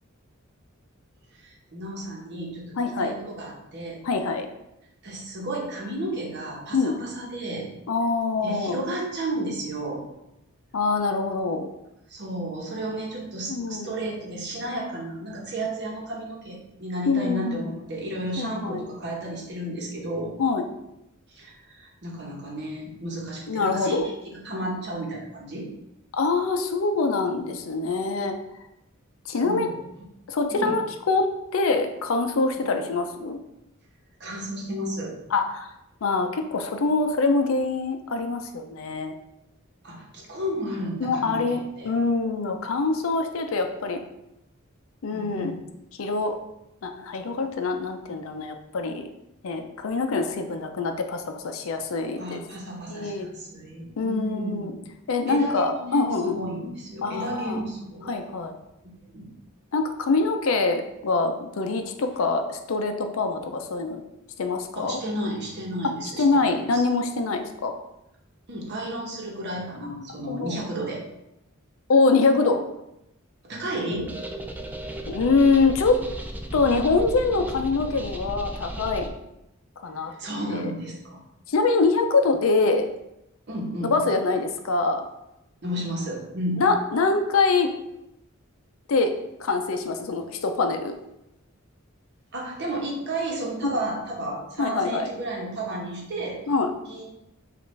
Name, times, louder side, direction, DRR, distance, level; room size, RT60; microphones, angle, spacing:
voice 1, 1.4-4.0 5.0-7.7 8.4-10.0 12.1-20.3 21.3-25.7 29.3-29.7 30.5-30.7 34.2-35.2 39.8-41.9 45.1-45.6 52.2-54.9 55.3-58.2 59.1-59.3 64.7-66.8 68.5-71.0 73.4-74.1 80.1-81.2 83.5-84.0 85.6-86.6 92.3-96.4 96.9-97.0, right 1 dB, 55° right, -2 dB, 1.0 m, -33 dB
voice 2, 2.8-3.1 4.0-4.5 6.7-7.0 7.9-8.8 10.7-11.7 13.5-13.9 17.1-17.7 18.4-18.9 20.4-20.6 23.5-24.1 26.1-28.4 29.3-29.7 30.3-31.3 31.5-33.4 35.3-35.7 36.0-39.1 41.0-44.0 45.0-45.5 46.0-46.3 46.8-49.1 49.4-52.4 52.9-53.3 54.0-54.7 55.1-56.4 57.0-57.6 58.1-58.5 59.7-64.0 64.4-65.0 65.8-67.7 69.8-70.6 71.9-72.6 75.1-76.0 76.5-79.1 79.8-80.1 80.5-80.7 81.5-82.9 83.9-85.0 86.6-87.7 88.9-89.1 89.4-90.9 93.6-93.8 94.6-95.1 96.5-96.7, left 3 dB, 70° left, 6 dB, 0.5 m, -24 dB
sound 1, 73.9-79.1, equal, 10° right, 0.3 m, -35 dB
5.2 x 2.5 x 3.2 m, 0.86 s
head